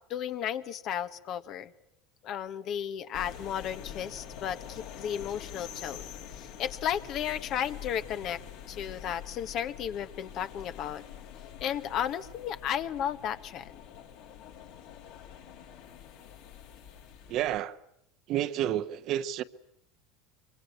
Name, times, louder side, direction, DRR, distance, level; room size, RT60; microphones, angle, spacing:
voice 1, 0.1-1.7 2.2-8.4 8.7-11.0 11.6-13.8, left 9 dB, 50° left, 1.4 m, -34 dB
sound 1, 3.1-17.6, left 9 dB, 70° left, 6.6 m, -46 dB
voice 2, 17.3-17.8 18.3-19.4, right 12 dB, 55° right, 1.2 m, -30 dB
24.5 x 24.0 x 9.3 m
hypercardioid pair, 85°, 0 cm